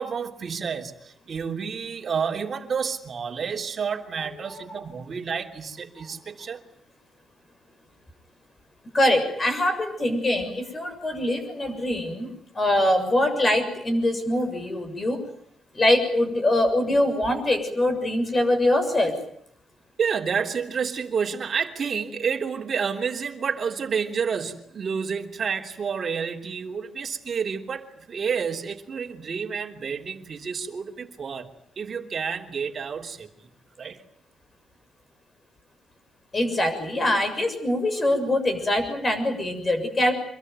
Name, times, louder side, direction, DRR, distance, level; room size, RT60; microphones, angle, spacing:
voice 1, 0.0-6.6 20.0-31.5 31.8-33.5 33.8-34.0, right 6 dB, 40° right, 3.3 m, -29 dB
voice 2, 8.9-15.2 15.7-19.2 36.3-40.1, left 1 dB, 25° left, 7.0 m, -23 dB
26.0 x 22.5 x 9.4 m
cardioid pair, 130°, 0 cm